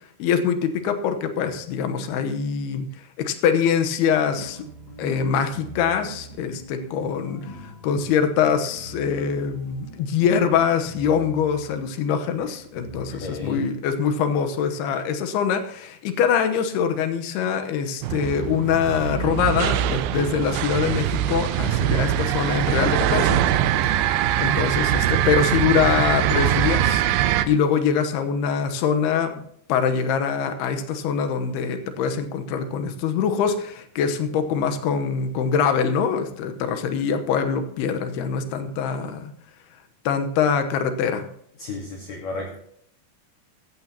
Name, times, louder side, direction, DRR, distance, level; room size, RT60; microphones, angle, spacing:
voice 1, 0.2-2.9 3.2-4.6 5.0-23.4 23.9-27.0 27.5-29.4 29.7-39.3 40.1-41.3, left 7 dB, 85° left, 7 dB, 3.0 m, -24 dB
sound 1, 4.3-13.5, right 1 dB, 30° left, 3.3 m, -42 dB
voice 2, 13.2-13.6 41.6-42.6, left 3 dB, 55° left, 0 dB, 2.4 m, -32 dB
sound 2, 18.0-27.5, right 11 dB, 80° right, 2.4 m, -22 dB
16.0 x 14.5 x 2.9 m, 0.68 s
omnidirectional pair, 4.6 m